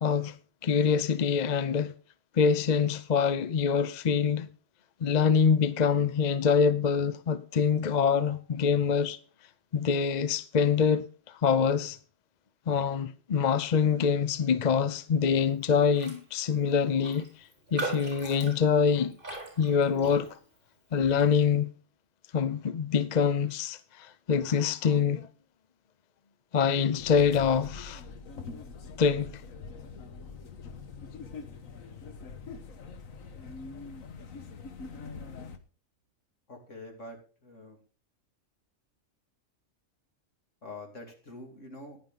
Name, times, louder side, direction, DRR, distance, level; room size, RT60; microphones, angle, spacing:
voice 1, 0.0-0.3 0.6-1.9 2.4-4.5 5.0-9.2 9.7-11.1 11.4-12.0 12.7-17.3 17.7-19.2 19.6-20.4 20.9-21.7 22.3-25.3 26.5-28.0 29.0-29.4, left 6 dB, 45° left, 0.6 m, -25 dB
Raindrop, 15.9-16.2 16.5-16.6 17.0-20.6 21.0-21.3, right 3 dB, 40° right, 4.4 m, -39 dB
sound 1, 27.0-35.6, left 4 dB, 80° left, 1.6 m, -43 dB
voice 2, 36.5-37.8 40.6-42.0, left 2 dB, 65° left, 3.2 m, -45 dB
14.5 x 10.5 x 3.8 m
omnidirectional pair, 1.4 m